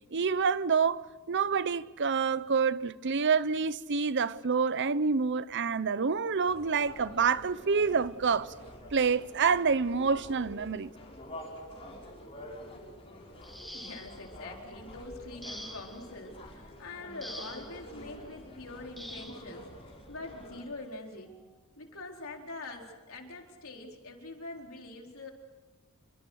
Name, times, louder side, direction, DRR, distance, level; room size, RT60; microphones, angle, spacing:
voice 1, 0.1-8.5 8.9-10.9, right 5 dB, 55° right, 0.8 m, -27 dB
sound 1, 6.5-20.6, left 1 dB, 25° left, 6.3 m, -48 dB
sound 2, 13.4-14.3 15.4-16.1 17.2-17.8 19.0-19.4 20.6-20.8 21.3-21.5, equal, ahead, 2.4 m, -45 dB
voice 2, 13.7-21.3 21.8-25.3, left 2 dB, 65° left, 4.2 m, -44 dB
28.5 x 24.5 x 6.4 m
head